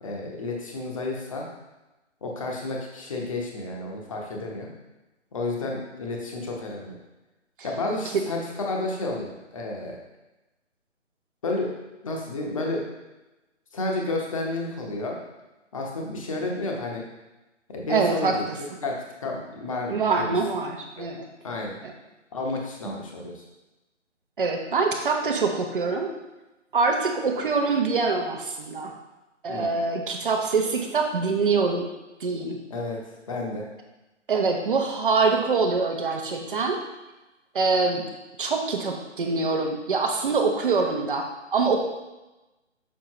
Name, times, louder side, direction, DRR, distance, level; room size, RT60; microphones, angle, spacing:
voice 1, 0.0-1.5 2.2-4.7 5.3-6.9 7.6-10.0 11.4-11.7 12.0-12.8 13.7-15.2 15.7-17.0 17.7-20.3 21.4-21.8 22.3-23.4 29.5-29.8 32.7-33.7, left 2 dB, 25° left, -1 dB, 0.9 m, -31 dB
voice 2, 17.9-18.6 19.9-21.3 22.9-23.0 24.4-26.1 26.7-28.9 29.4-31.9 32.2-32.6 34.3-36.8 37.5-38.0 38.4-41.2 41.5-41.8, right 4 dB, 45° right, 3 dB, 0.9 m, -24 dB
6.5 x 5.3 x 3.0 m, 1.0 s
figure-of-eight pair, 150°, 37 cm